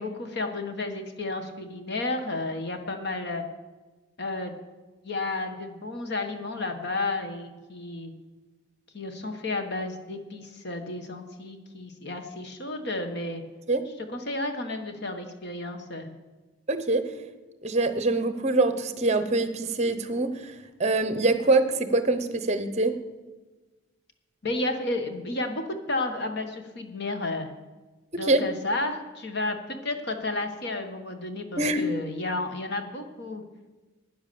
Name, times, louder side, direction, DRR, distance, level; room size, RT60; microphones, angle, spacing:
voice 1, 0.0-3.4 4.2-4.5 5.0-8.1 8.9-13.4 14.1-16.1 24.4-27.5 28.2-33.4, left 2 dB, 55° left, 6 dB, 1.4 m, -32 dB
voice 2, 16.7-17.0 17.6-20.5 20.8-23.0 28.2-28.4 31.6-31.8, right 2 dB, 35° right, 11 dB, 0.9 m, -24 dB
10.5 x 10.0 x 6.9 m, 1.2 s
head